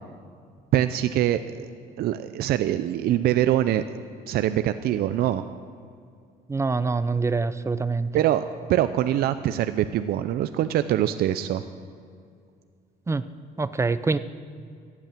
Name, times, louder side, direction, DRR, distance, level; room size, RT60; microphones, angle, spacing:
voice 1, 0.7-1.7 2.0-4.0 4.3-5.4 8.1-11.6, right 12 dB, 65° right, 11 dB, 0.6 m, -24 dB
voice 2, 6.5-8.1 13.1-13.2 13.6-14.2, right 4 dB, 15° right, 14 dB, 0.5 m, -25 dB
15.0 x 8.5 x 9.0 m, 2.3 s
cardioid pair, 110°, 17 cm